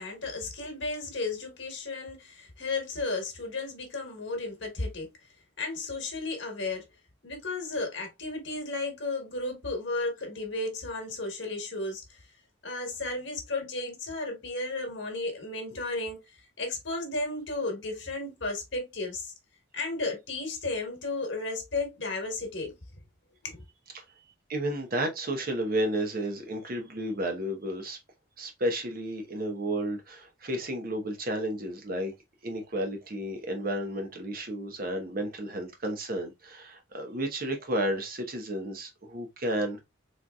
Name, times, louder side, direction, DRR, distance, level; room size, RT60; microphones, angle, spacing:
voice 1, 0.0-5.1 5.6-6.8 7.2-12.2 12.6-16.2 16.6-19.3 19.7-22.7 23.4-23.6, left 2 dB, 65° left, 1.2 m, -34 dB
voice 2, 24.5-28.0 28.4-32.1 32.4-39.8, right 1 dB, 45° right, 1.0 m, -32 dB
4.0 x 3.2 x 2.2 m
head